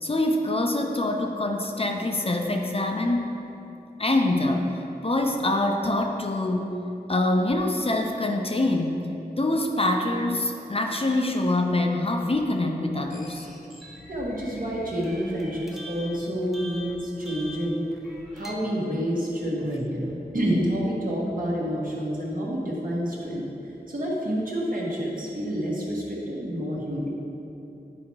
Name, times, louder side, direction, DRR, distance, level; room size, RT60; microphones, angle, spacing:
voice 1, 0.0-3.3 4.0-4.7 5.0-6.8 7.1-9.0 9.4-13.5, left 2 dB, 35° left, 2 dB, 0.6 m, -25 dB
sound 1, 13.1-18.5, equal, ahead, 0.9 m, -44 dB
voice 2, 14.1-17.8 18.3-23.5 23.9-27.1, equal, 60° right, -5 dB, 1.7 m, -28 dB
9.7 x 4.3 x 4.8 m, 2.9 s
wide cardioid pair, 60°, 16 cm